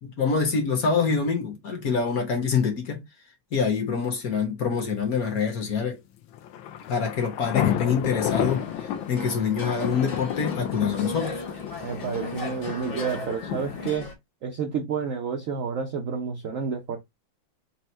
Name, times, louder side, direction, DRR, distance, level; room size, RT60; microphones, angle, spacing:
voice 1, 0.0-3.0 3.5-6.0 6.9-11.4, left 5 dB, 55° left, 1.2 m, -25 dB
sound 1, 6.3-13.9, left 10 dB, 75° left, 1.3 m, -31 dB
sound 2, 8.3-14.1, left 2 dB, 35° left, 0.9 m, -37 dB
voice 2, 11.8-14.1 14.4-17.0, right 6 dB, 75° right, 0.7 m, -30 dB
4.3 x 2.1 x 4.2 m
omnidirectional pair, 2.2 m